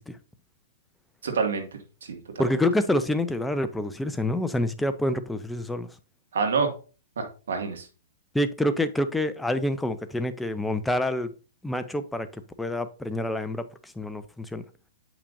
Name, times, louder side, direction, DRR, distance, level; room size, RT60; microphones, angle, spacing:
voice 1, 1.2-1.7 2.0-2.6 6.3-6.7 7.2-7.9, right 5 dB, 85° right, 4 dB, 2.0 m, -27 dB
voice 2, 2.4-5.9 8.3-11.3 11.6-12.3 12.6-13.6 14.0-14.6, left 1 dB, 5° left, 10 dB, 0.5 m, -27 dB
8.3 x 5.8 x 2.6 m, 0.35 s
hypercardioid pair, 150°, 0 cm